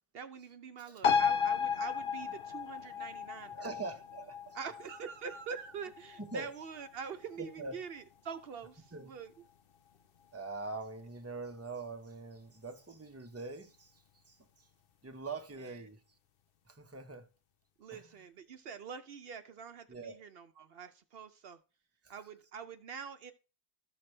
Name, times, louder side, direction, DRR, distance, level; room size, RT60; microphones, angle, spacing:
voice 1, 0.1-3.7 4.5-9.3 15.6-15.8 17.8-21.6 22.1-23.3, right 6 dB, 70° right, 0.9 m, -45 dB
sound 1, 1.0-8.0 8.3-8.4, left 6 dB, 65° left, 0.8 m, -34 dB
voice 2, 3.5-4.6 6.3-6.5 7.4-7.7 8.9-9.1 10.3-14.7 15.0-16.0 16.7-17.3 17.9-18.0 19.9-20.2 22.0-22.1, right 3 dB, 15° right, 0.9 m, -43 dB
13.0 x 5.9 x 3.2 m
omnidirectional pair, 1.1 m